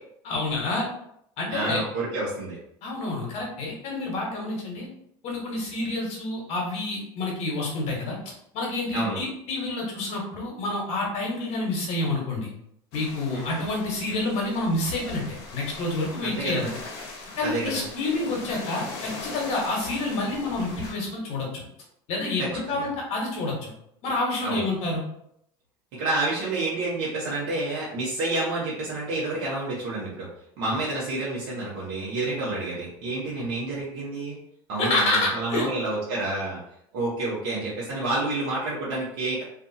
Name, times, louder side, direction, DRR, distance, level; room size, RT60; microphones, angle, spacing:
voice 1, 0.2-0.9 1.4-1.8 2.8-4.9 5.2-8.2 8.5-12.5 12.9-16.7 17.3-21.6 22.1-23.7 24.0-25.0 33.4-33.5 34.8-35.7, left 2 dB, 55° left, -2 dB, 1.1 m, -28 dB
voice 2, 1.5-2.6 8.9-9.2 13.3-13.7 16.2-16.8 17.4-17.8 22.4-22.9 24.4-24.6 26.0-30.3 30.6-34.4 34.7-36.6 36.9-39.4, right 2 dB, 70° right, -7 dB, 1.0 m, -29 dB
sound 1, 12.9-20.9, left 3 dB, 70° left, 0.8 m, -41 dB
2.6 x 2.4 x 2.7 m, 0.72 s
supercardioid pair, 100°, 13 cm